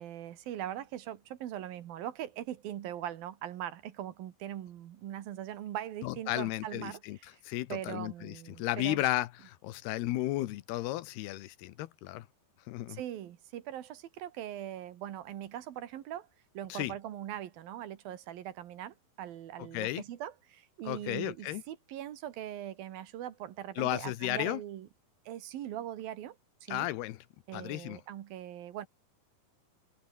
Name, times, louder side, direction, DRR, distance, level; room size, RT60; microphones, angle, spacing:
voice 1, 0.0-7.0 7.3-7.4 7.7-9.0 12.9-16.3 16.5-24.9 25.3-26.9 27.5-28.9, right 11 dB, 70° right, 3.2 m, -41 dB
voice 2, 6.0-7.2 7.5-12.3 12.7-13.0 16.7-16.9 19.7-20.0 20.9-21.6 23.8-24.6 26.7-27.2 27.5-28.0, left 16 dB, 90° left, 3.0 m, -34 dB
omnidirectional pair, 4.5 m